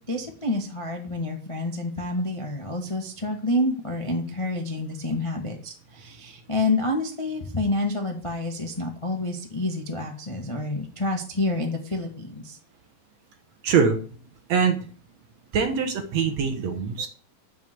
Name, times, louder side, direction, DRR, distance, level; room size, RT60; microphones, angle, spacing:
voice 1, 0.1-12.6, left 2 dB, 25° left, 2 dB, 0.6 m, -28 dB
voice 2, 13.6-14.0 14.5-14.8 15.5-17.1, right 6 dB, 65° right, 5 dB, 1.9 m, -23 dB
11.0 x 7.1 x 7.9 m, 0.42 s
omnidirectional pair, 4.1 m